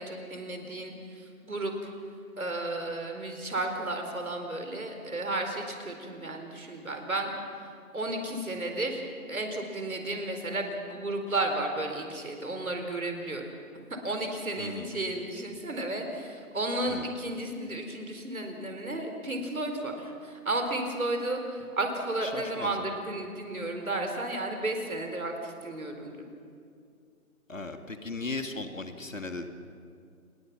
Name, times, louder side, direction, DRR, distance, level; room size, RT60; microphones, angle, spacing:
voice 1, 0.0-1.9 2.4-7.3 7.6-7.7 7.9-9.0 9.3-13.5 14.0-26.1, right 2 dB, 65° right, 4 dB, 4.3 m, -33 dB
voice 2, 14.6-14.9 16.9-17.1 22.2-22.9 27.5-29.5, left 3 dB, 60° left, 6 dB, 1.9 m, -37 dB
28.5 x 21.5 x 5.9 m, 2.3 s
figure-of-eight pair, 180°, 45 cm